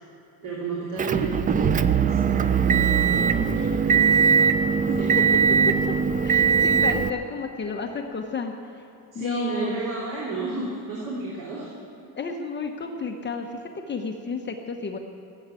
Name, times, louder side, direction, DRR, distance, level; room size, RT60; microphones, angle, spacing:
voice 1, 0.4-4.3 4.8-5.1 9.1-11.7, right 3 dB, 55° right, -5 dB, 3.0 m, -32 dB
Motor vehicle (road) / Engine, 1.0-7.1, right 6 dB, 25° right, 0.3 m, -20 dB
voice 2, 6.2-8.5 9.1-9.8 12.2-13.6 13.9-15.0, left 4 dB, 30° left, 3 dB, 1.0 m, -31 dB
16.0 x 8.1 x 9.7 m, 2.9 s
cardioid pair, 155°, 38 cm